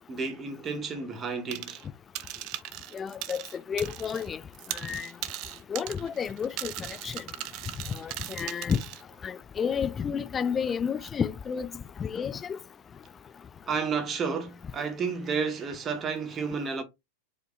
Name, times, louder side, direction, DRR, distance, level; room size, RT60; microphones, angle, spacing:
voice 1, 0.1-1.8 13.7-16.8, right 5 dB, 25° right, 1.0 m, -31 dB
sound 1, 1.5-1.9 2.1-4.3 4.5-9.0, right 15 dB, 40° right, 0.4 m, -38 dB
voice 2, 2.9-4.4 4.7-5.1 5.7-7.2 7.9-8.8 9.2-11.7 12.0-12.6, left 7 dB, 20° left, 0.4 m, -31 dB
4.9 x 2.7 x 3.1 m
figure-of-eight pair, 90°, 0 cm